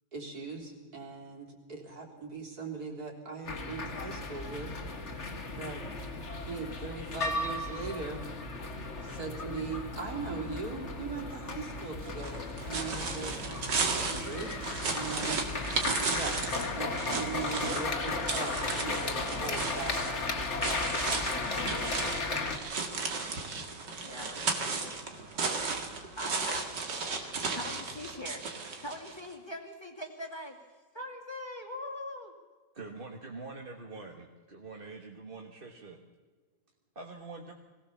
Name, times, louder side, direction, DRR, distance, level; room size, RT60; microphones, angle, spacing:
voice 1, 0.1-4.7 5.6-5.8 6.5-8.2 9.0-13.3 14.1-14.6 14.9-15.4 16.1-16.4 16.7-22.2, right 4 dB, 60° right, 0 dB, 4.1 m, -40 dB
sound 1, 3.4-22.6, left 3 dB, 40° left, 2.0 m, -35 dB
sound 2, 12.1-29.3, right 4 dB, 90° right, 2.8 m, -35 dB
voice 2, 15.2-15.7 24.0-25.0 26.2-26.7 27.2-28.4 28.8-30.6 30.9-32.3, left 1 dB, 15° left, 2 dB, 2.2 m, -42 dB
voice 3, 32.8-36.0 37.0-37.5, right 3 dB, 35° right, 2 dB, 1.6 m, -45 dB
21.5 x 17.5 x 7.1 m, 1.3 s
omnidirectional pair, 1.8 m